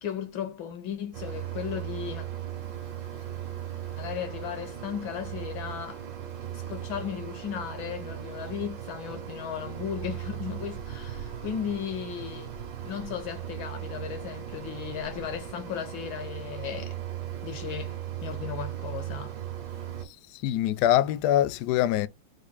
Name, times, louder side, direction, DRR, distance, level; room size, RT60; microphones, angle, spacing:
voice 1, 0.0-2.3 4.0-6.0 6.7-12.5 12.8-17.0 17.4-19.3, left 8 dB, 70° left, 1.7 m, -36 dB
Mechanisms, 1.1-20.0, right 10 dB, 60° right, 1.8 m, -38 dB
voice 2, 20.4-22.1, left 12 dB, 90° left, 0.9 m, -23 dB
5.2 x 4.1 x 2.2 m
omnidirectional pair, 2.3 m